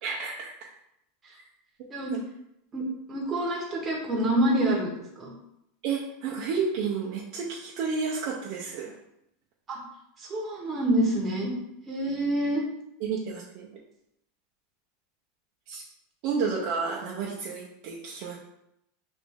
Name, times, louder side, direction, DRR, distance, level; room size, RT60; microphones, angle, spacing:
voice 1, 0.0-0.5 2.1-2.2 5.8-8.9 13.0-13.7 15.7-15.8 16.2-18.4, right 5 dB, 50° right, -3 dB, 0.5 m, -31 dB
voice 2, 3.1-5.3 9.7-9.8 10.2-11.5 11.9-12.6 16.4-16.5, right 1 dB, 20° right, -2 dB, 0.9 m, -27 dB
3.0 x 2.5 x 3.5 m, 0.78 s
supercardioid pair, 140°, 0 cm